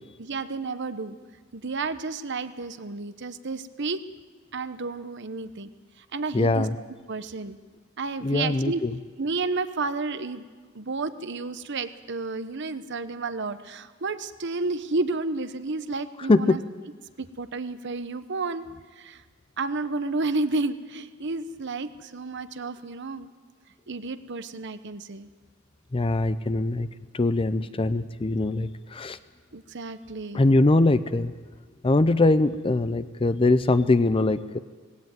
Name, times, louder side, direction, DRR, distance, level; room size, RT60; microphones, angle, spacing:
voice 1, 0.2-1.2 1.5-4.0 4.5-6.7 7.1-7.6 8.0-8.8 9.2-10.4 10.7-16.6 17.2-18.6 19.0-19.2 19.6-23.3 23.9-25.3 29.5-30.4, right 3 dB, 60° right, 12 dB, 1.0 m, -31 dB
voice 2, 6.3-6.7 8.2-8.9 16.3-16.6 25.9-26.9 27.1-29.2 30.3-31.3 31.8-34.6, left 2 dB, 25° left, 13 dB, 0.5 m, -22 dB
18.5 x 17.0 x 9.4 m, 1.5 s
head